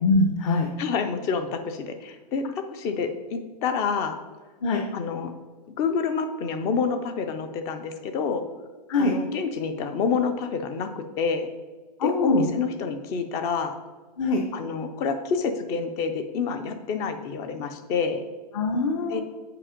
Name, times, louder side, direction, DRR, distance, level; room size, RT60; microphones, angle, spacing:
voice 1, 0.0-0.7 4.6-4.8 8.9-9.1 12.0-12.5 14.2-14.4 18.5-19.2, left 3 dB, 50° left, 3 dB, 0.9 m, -23 dB
voice 2, 0.8-4.2 4.9-5.3 5.8-8.4 9.0-11.5 12.0-13.8 14.5-18.2 19.1-19.2, left 5 dB, 15° left, 9 dB, 0.3 m, -28 dB
7.5 x 5.1 x 5.0 m, 1.3 s
hypercardioid pair, 165°, 21 cm